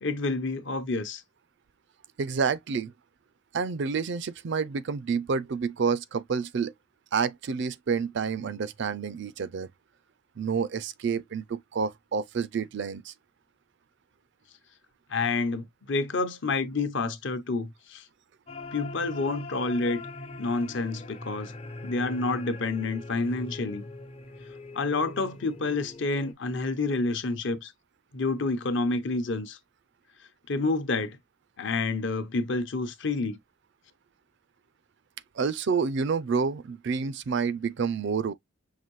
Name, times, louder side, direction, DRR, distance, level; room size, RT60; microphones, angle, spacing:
voice 1, 0.0-1.2 15.1-18.0 18.7-20.0 20.4-21.5 21.8-23.8 24.7-27.7 28.1-29.6 30.5-31.2 31.6-33.4, left 3 dB, 55° left, 0.8 m, -29 dB
voice 2, 2.2-2.9 3.5-6.7 7.1-9.7 10.4-13.1 35.4-38.3, right 5 dB, 55° right, 0.4 m, -29 dB
sound 1, 18.5-26.3, left 2 dB, 30° left, 0.5 m, -41 dB
5.7 x 2.6 x 3.1 m
head